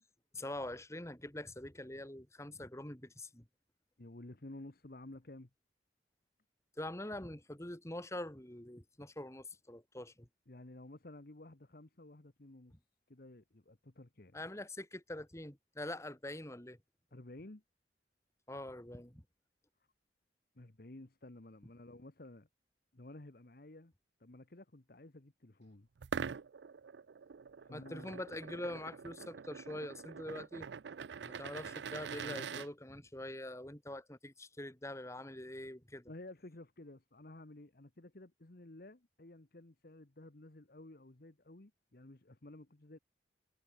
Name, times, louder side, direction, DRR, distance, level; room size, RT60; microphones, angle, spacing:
voice 1, 0.3-3.4 6.8-10.3 14.3-16.8 18.5-19.2 27.7-30.7 31.3-36.1, left 1 dB, 15° left, 2.3 m, -44 dB
voice 2, 4.0-5.5 10.5-12.8 13.1-14.4 17.1-17.6 20.5-22.5 22.9-23.9 24.2-25.9 27.6-28.2 36.1-43.0, left 2 dB, 55° left, 1.3 m, -53 dB
sound 1, 26.0-32.7, right 6 dB, 75° right, 0.5 m, -44 dB
head